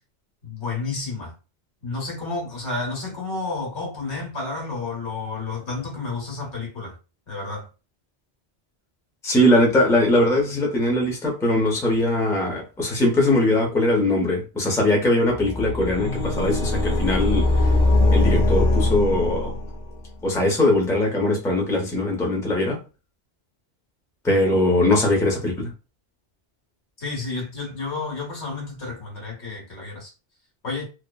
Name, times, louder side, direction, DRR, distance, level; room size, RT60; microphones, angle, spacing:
voice 1, 0.4-1.3 1.8-7.0 7.3-7.7 27.0-30.1 30.6-30.8, left 3 dB, 80° left, 1.5 m, -31 dB
voice 2, 9.2-17.7 18.1-19.5 20.2-22.8 24.2-25.7, left 1 dB, 5° left, 0.5 m, -21 dB
sound 1, 15.3-20.0, left 2 dB, 45° left, 0.6 m, -21 dB
3.0 x 2.0 x 2.2 m
omnidirectional pair, 1.1 m